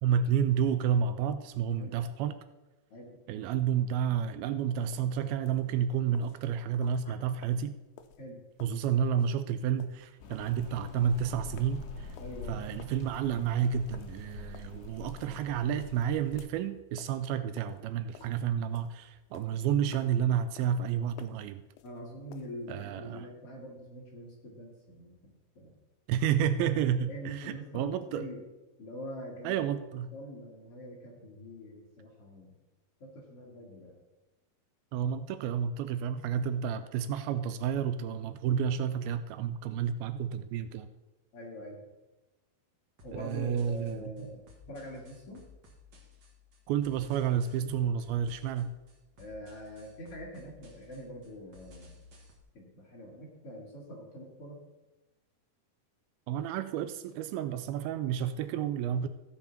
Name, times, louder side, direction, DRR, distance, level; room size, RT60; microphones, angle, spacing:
voice 1, 0.0-2.4 3.3-7.7 8.6-12.1 12.5-21.6 22.7-23.3 26.1-28.3 29.4-30.1 34.9-40.9 43.1-44.1 46.7-48.7 56.3-59.1, right 8 dB, 80° right, 11 dB, 2.3 m, -30 dB
voice 2, 2.9-3.2 8.2-8.4 12.2-12.6 21.8-25.8 27.1-28.4 28.8-29.7 30.1-32.6 33.0-34.0 41.3-41.8 43.0-44.4 44.7-45.4 49.2-51.9 52.5-54.6, equal, 45° left, -3 dB, 2.4 m, -44 dB
sound 1, 4.8-22.7, left 9 dB, 80° left, 2.1 m, -57 dB
sound 2, 10.2-16.4, left 4 dB, 65° left, 1.8 m, -45 dB
sound 3, 43.0-52.4, left 4 dB, 45° right, 1.5 m, -56 dB
14.5 x 5.4 x 5.8 m, 1.1 s
omnidirectional pair, 4.4 m